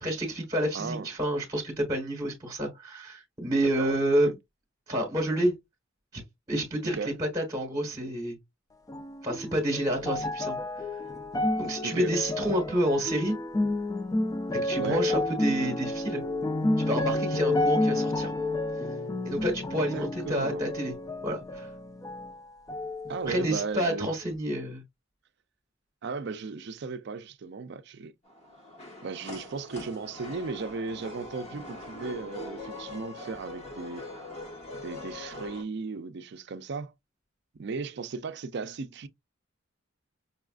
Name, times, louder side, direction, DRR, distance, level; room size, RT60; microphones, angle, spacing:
voice 1, 0.0-4.3 4.9-5.5 6.1-6.2 6.5-8.4 9.2-10.6 11.6-13.4 14.6-16.2 16.9-18.3 19.2-20.9 21.2-21.7 23.3-24.8, right 1 dB, 25° right, 1.3 m, -29 dB
voice 2, 0.7-1.1 3.6-4.3 6.9-7.1 11.8-12.1 14.8-15.1 19.9-20.7 23.1-24.1 26.0-28.1 29.0-34.1 34.7-36.9 37.5-39.1, right 4 dB, 55° right, 0.5 m, -36 dB
sound 1, 8.9-22.4 22.7-23.6 24.3-24.4, left 2 dB, 15° left, 0.3 m, -30 dB
sound 2, 28.2-35.6, left 2 dB, 35° left, 1.4 m, -42 dB
5.5 x 2.4 x 2.4 m
head